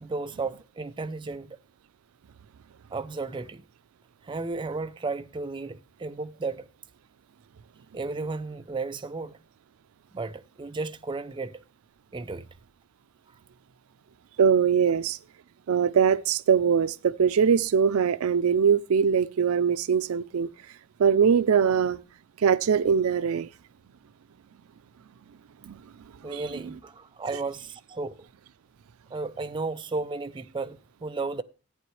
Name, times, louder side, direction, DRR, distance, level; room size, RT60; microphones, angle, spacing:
voice 1, 0.0-1.6 2.9-3.6 4.2-6.7 7.9-9.4 10.1-11.6 12.1-12.5 26.2-28.2 29.1-31.4, right 3 dB, 20° right, 0.4 m, -34 dB
voice 2, 14.4-15.2 15.7-20.5 21.0-22.0 22.4-23.5 25.6-25.8 26.3-26.4, right 7 dB, 90° right, 0.4 m, -22 dB
14.0 x 8.9 x 3.1 m
head